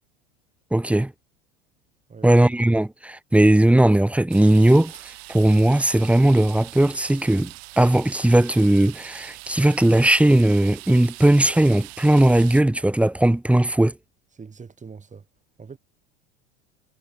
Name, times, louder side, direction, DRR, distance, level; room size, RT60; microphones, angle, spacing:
voice 1, 0.7-1.1 2.2-4.9 5.3-13.9, right 1 dB, 5° right, 1.1 m, -18 dB
sound 1, 4.3-12.6, right 25 dB, 60° right, 7.3 m, -42 dB
voice 2, 14.3-15.3 15.6-15.8, right 5 dB, 20° right, 8.0 m, -42 dB
figure-of-eight pair, 80°, 34 cm